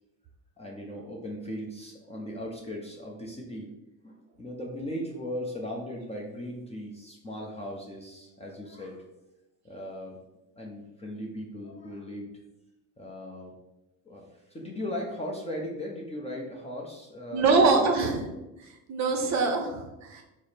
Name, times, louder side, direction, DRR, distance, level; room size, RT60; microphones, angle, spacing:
voice 1, 0.6-3.7 4.0-9.0 9.6-10.2 10.6-12.3 13.0-13.5 14.1-17.9, equal, 15° left, -2 dB, 0.5 m, -38 dB
voice 2, 17.3-18.2 18.9-20.2, right 4 dB, 40° right, 3 dB, 0.6 m, -23 dB
4.7 x 2.0 x 4.1 m, 0.98 s
cardioid pair, 130°, 43 cm